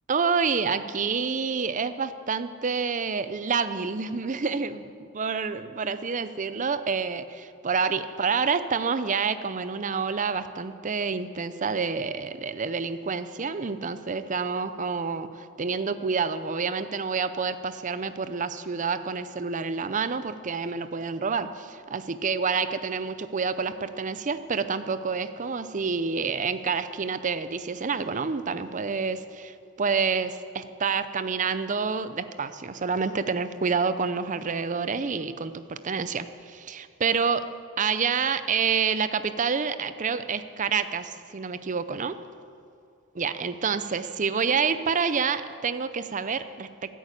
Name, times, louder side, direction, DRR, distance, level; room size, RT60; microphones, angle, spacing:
voice 1, 0.1-37.4 37.8-42.2 43.2-46.7, right 5 dB, 35° right, 12 dB, 0.5 m, -28 dB
15.0 x 8.7 x 8.4 m, 2.3 s
head